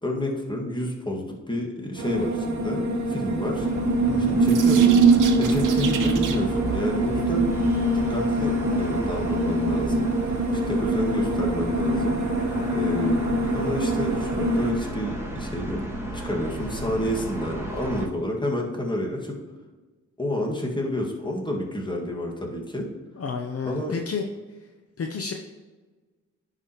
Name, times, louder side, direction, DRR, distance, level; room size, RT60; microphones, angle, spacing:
voice 1, 0.0-2.8 3.1-3.7 4.3-5.0 5.4-7.5 7.7-12.2 12.7-15.9 16.1-19.4 20.2-22.9 23.7-23.9, left 1 dB, 15° left, 0 dB, 1.9 m, -30 dB
sound 1, 2.0-14.7, equal, 65° right, 1.2 m, -26 dB
sound 2, 3.5-18.1, right 1 dB, 10° right, 2.0 m, -34 dB
sound 3, 3.5-6.6, right 6 dB, 80° right, 0.8 m, -20 dB
voice 2, 4.0-4.4 23.2-24.2 25.0-25.3, left 5 dB, 50° left, 3 dB, 0.8 m, -31 dB
10.5 x 4.9 x 3.0 m, 1.3 s
cardioid pair, 65°, 31 cm